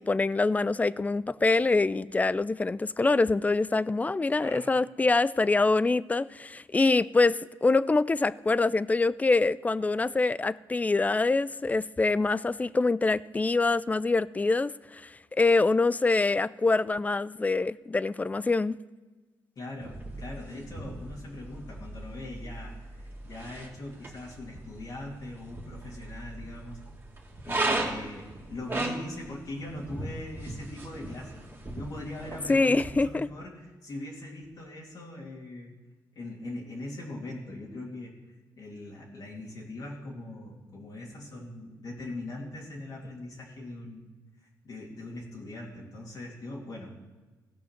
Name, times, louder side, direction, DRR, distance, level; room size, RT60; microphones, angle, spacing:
voice 1, 0.0-15.0 15.4-18.8 32.5-33.3, left 3 dB, 20° left, 19 dB, 0.4 m, -25 dB
voice 2, 4.3-4.7 19.6-26.8 27.4-35.7 36.2-44.0 44.6-46.9, left 2 dB, 55° left, -4 dB, 2.5 m, -41 dB
sound 1, 19.8-32.9, right 2 dB, 25° right, 2.1 m, -37 dB
16.0 x 5.5 x 5.9 m, 1.3 s
cardioid pair, 75°, 8 cm